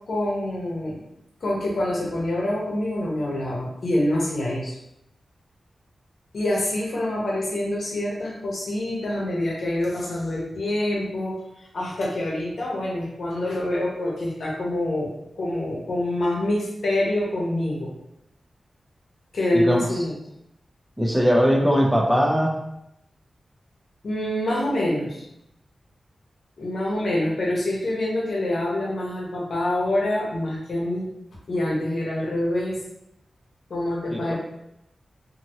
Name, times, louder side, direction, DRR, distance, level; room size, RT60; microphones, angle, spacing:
voice 1, 0.1-1.0 1.4-4.8 6.3-11.4 11.7-15.1 15.4-17.9 19.3-20.2 24.0-25.2 26.6-31.1 31.5-32.8 33.7-34.4, left 1 dB, 60° left, -3 dB, 0.9 m, -26 dB
voice 2, 19.5-19.9 21.0-22.5 34.1-34.4, equal, 5° right, -1 dB, 0.5 m, -20 dB
2.8 x 2.7 x 2.9 m, 0.83 s
wide cardioid pair, 180°, 0 cm